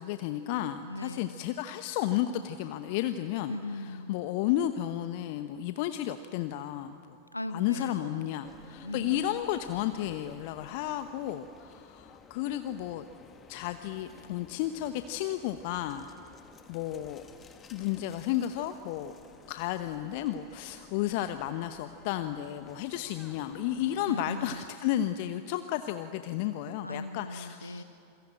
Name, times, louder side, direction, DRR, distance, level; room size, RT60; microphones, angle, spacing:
voice 1, 0.0-3.5 4.1-7.0 7.5-13.0 13.5-16.1 16.7-17.2 17.7-19.1 19.5-27.8, left 12 dB, 45° left, 10 dB, 0.9 m, -32 dB
voice 2, 0.9-1.4 3.5-4.2 7.3-8.3 8.8-9.4 24.0-24.6 26.8-27.8, left 1 dB, 85° left, 12 dB, 1.0 m, -39 dB
sound 1, 8.4-24.6, left 6 dB, 20° left, 1.9 m, -54 dB
27.0 x 22.0 x 8.9 m, 2.6 s
figure-of-eight pair, 90°, 0 cm